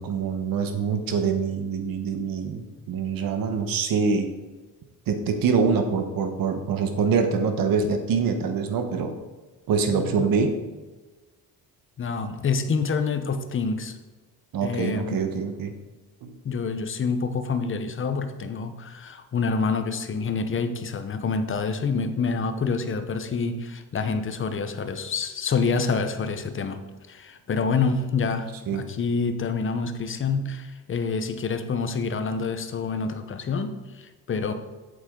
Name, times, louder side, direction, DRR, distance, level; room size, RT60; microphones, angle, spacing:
voice 1, 0.0-4.3 5.1-9.1 9.7-10.6 14.5-15.7 16.2-16.3 28.7-28.8, right 5 dB, 65° right, 7 dB, 1.2 m, -25 dB
voice 2, 9.9-10.3 12.0-14.0 14.6-15.2 16.4-26.8 27.1-34.5, left 4 dB, 35° left, 8 dB, 0.8 m, -27 dB
8.3 x 8.1 x 3.8 m, 1.3 s
cardioid pair, 130°, 36 cm